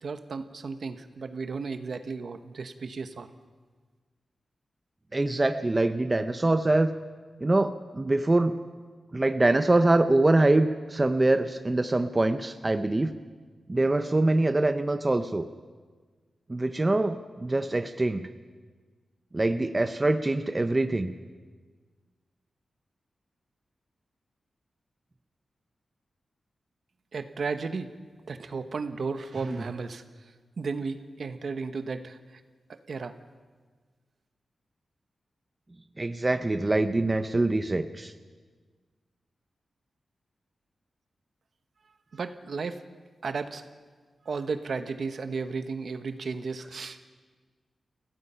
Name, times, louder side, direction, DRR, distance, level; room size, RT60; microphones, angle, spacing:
voice 1, 0.0-3.3 27.1-27.9 28.3-30.0 30.6-32.4 32.7-33.2 42.1-42.8 43.2-43.6 44.2-47.1, right 4 dB, 60° right, 9 dB, 1.1 m, -34 dB
voice 2, 5.1-6.9 7.4-8.6 9.1-13.1 13.7-15.4 16.5-18.3 19.3-21.1 29.4-29.6 36.0-38.1, right 2 dB, 20° right, 8 dB, 0.7 m, -24 dB
29.5 x 17.0 x 5.7 m, 1.5 s
wide cardioid pair, 135°, 0 cm